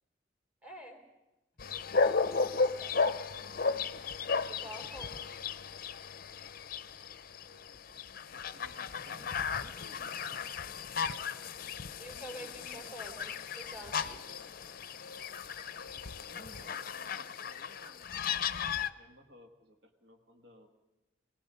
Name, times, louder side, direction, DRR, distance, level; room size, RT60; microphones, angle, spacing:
voice 1, 0.6-1.0 2.1-3.0 4.5-5.2 12.0-14.4, equal, 10° right, 3 dB, 3.2 m, -48 dB
sound 1, 1.6-18.9, left 5 dB, 50° left, 0.6 m, -35 dB
voice 2, 4.5-6.0 7.5-7.6 7.9-11.2 12.3-13.3 16.3-20.7, equal, 60° right, 4 dB, 1.6 m, -59 dB
25.5 x 18.0 x 5.5 m, 1.0 s
head